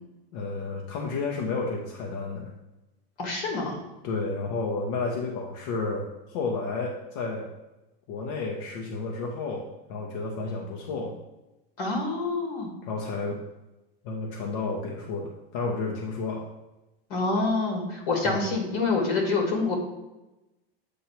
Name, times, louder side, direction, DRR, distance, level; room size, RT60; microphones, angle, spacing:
voice 1, 0.3-2.5 4.0-7.5 8.1-11.1 12.8-13.4 14.0-16.5 18.2-18.4, left 3 dB, 25° left, -1 dB, 0.4 m, -31 dB
voice 2, 3.2-3.8 11.8-12.7 17.1-19.8, left 3 dB, 40° left, 1 dB, 1.8 m, -26 dB
7.7 x 2.8 x 5.7 m, 1.0 s
supercardioid pair, 180°, 30 cm